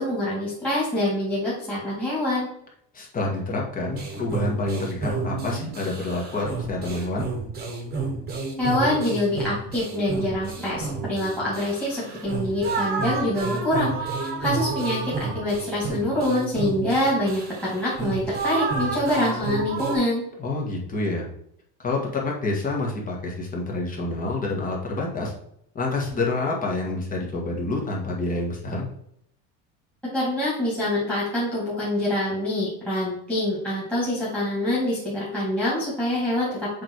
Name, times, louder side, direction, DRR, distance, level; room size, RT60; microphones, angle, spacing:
voice 1, 0.0-2.5 8.6-20.2 30.1-36.7, left 1 dB, 5° left, -9 dB, 2.2 m, -25 dB
voice 2, 2.9-7.3 20.4-21.3 21.8-25.3 25.7-28.9, left 2 dB, 25° left, -2 dB, 1.6 m, -28 dB
sound 1, 3.9-20.0, right 4 dB, 25° right, 1.3 m, -31 dB
7.2 x 3.5 x 4.6 m, 0.71 s
cardioid pair, 165°, 36 cm